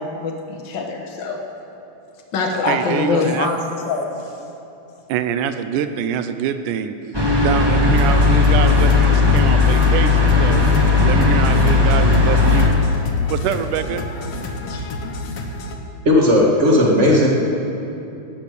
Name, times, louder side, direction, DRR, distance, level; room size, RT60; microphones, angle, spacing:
voice 1, 0.0-1.4 2.3-4.1 14.7-14.8, left 4 dB, 75° left, 1 dB, 1.0 m, -23 dB
voice 2, 2.7-3.5 5.1-7.0 7.4-10.7 11.0-12.8 13.3-14.0, right 8 dB, 80° right, 10 dB, 2.0 m, -24 dB
sound 1, 7.1-12.7, left 4 dB, 15° right, 0.7 m, -15 dB
sound 2, 8.0-15.8, left 1 dB, 60° left, 1.7 m, -30 dB
voice 3, 16.0-17.3, left 1 dB, 35° right, -2 dB, 1.2 m, -14 dB
19.0 x 8.6 x 6.5 m, 2.8 s
omnidirectional pair, 3.9 m